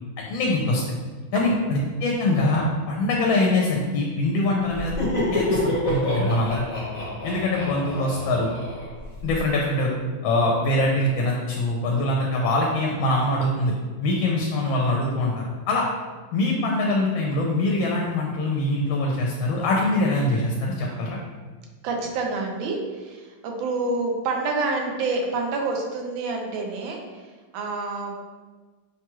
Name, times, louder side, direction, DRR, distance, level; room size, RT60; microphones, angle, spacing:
voice 1, 0.2-0.8 1.3-4.9 5.3-6.6 7.2-8.5 9.2-9.9 10.2-13.7 14.0-15.8 16.3-21.2, left 2 dB, 80° left, -1 dB, 1.3 m, -23 dB
Laughter, 4.7-9.4, left 1 dB, 50° left, 1.6 m, -27 dB
voice 2, 21.8-27.2 27.5-28.2, right 3 dB, 85° right, 1 dB, 1.4 m, -28 dB
5.9 x 2.2 x 3.0 m, 1.4 s
omnidirectional pair, 2.1 m